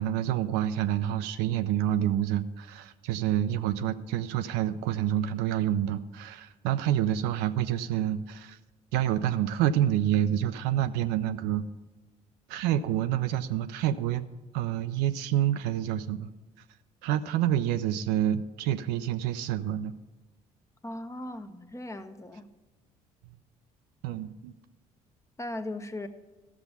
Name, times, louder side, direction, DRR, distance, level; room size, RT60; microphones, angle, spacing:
voice 1, 0.0-8.6 8.9-11.7 12.5-14.3 14.5-16.3 17.0-19.9 24.0-24.5, right 11 dB, 60° right, 0.5 m, -28 dB
voice 2, 20.8-22.5 25.4-26.1, left 1 dB, 15° left, 0.8 m, -38 dB
13.0 x 6.9 x 5.5 m
figure-of-eight pair, 50°, 19 cm